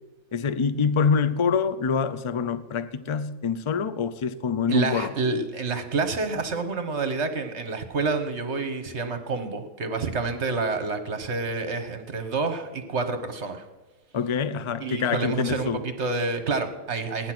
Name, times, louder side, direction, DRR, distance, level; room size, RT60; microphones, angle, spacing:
voice 1, 0.3-5.1 14.1-15.8, left 6 dB, 50° left, 0.3 m, -25 dB
voice 2, 4.7-13.7 14.8-17.3, right 4 dB, 55° right, 1.5 m, -28 dB
16.5 x 10.5 x 6.1 m
omnidirectional pair, 1.5 m